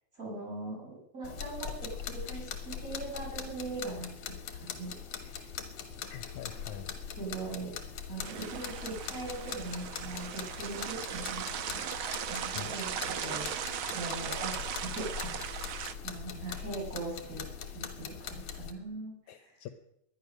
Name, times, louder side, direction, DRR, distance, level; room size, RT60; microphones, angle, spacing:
voice 1, 0.1-4.1 4.6-5.5 7.2-7.7 8.1-13.5 13.9-15.4 16.0-17.4 17.7-19.6, right 3 dB, 25° right, -2 dB, 6.8 m, -41 dB
sound 1, 1.2-18.7, left 8 dB, 55° left, 2.3 m, -41 dB
voice 2, 6.0-6.9 12.6-12.7 19.3-19.7, left 10 dB, 75° left, 10 dB, 2.1 m, -44 dB
sound 2, 8.2-15.9, right 9 dB, 70° right, 1.2 m, -38 dB
19.5 x 11.5 x 6.4 m, 0.78 s
omnidirectional pair, 3.6 m